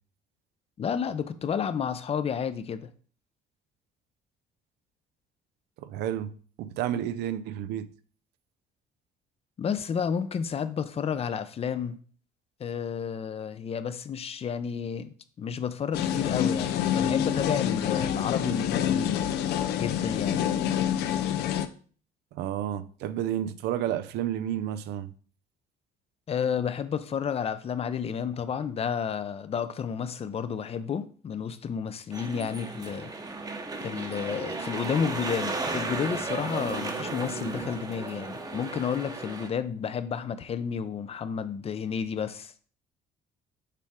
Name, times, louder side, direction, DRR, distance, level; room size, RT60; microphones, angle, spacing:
voice 1, 0.8-2.9 9.6-12.0 12.6-19.3 19.8-20.4 26.3-33.1 33.8-42.5, left 7 dB, 35° left, 0.6 m, -31 dB
voice 2, 5.8-6.3 6.6-7.9 22.3-25.1, right 11 dB, 80° right, 0.5 m, -31 dB
sound 1, 15.9-21.7, left 10 dB, 80° left, 0.6 m, -27 dB
sound 2, 32.1-39.5, right 3 dB, 20° right, 0.9 m, -34 dB
6.8 x 4.5 x 3.6 m
cardioid pair, 110°, 17 cm